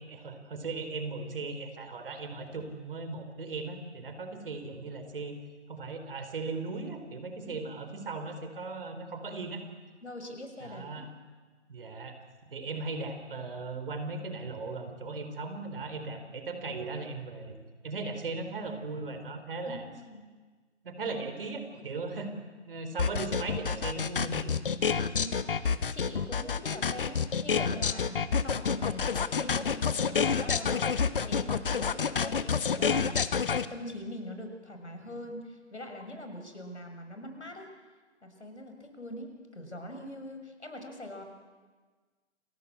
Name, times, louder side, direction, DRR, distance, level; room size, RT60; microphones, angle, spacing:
voice 1, 0.1-5.4 5.7-9.6 10.6-11.1 11.7-12.2 12.4-19.9 20.8-22.3 22.6-24.5 35.1-35.2, right 3 dB, 50° right, 7 dB, 4.4 m, -37 dB
voice 2, 10.0-11.1 19.7-20.2 25.1-37.7 38.2-41.2, left 1 dB, 70° left, 5 dB, 6.4 m, -43 dB
sound 1, 23.0-33.6, left 6 dB, 50° left, 1.3 m, -28 dB
29.5 x 22.0 x 8.7 m, 1.4 s
figure-of-eight pair, 140°, 35 cm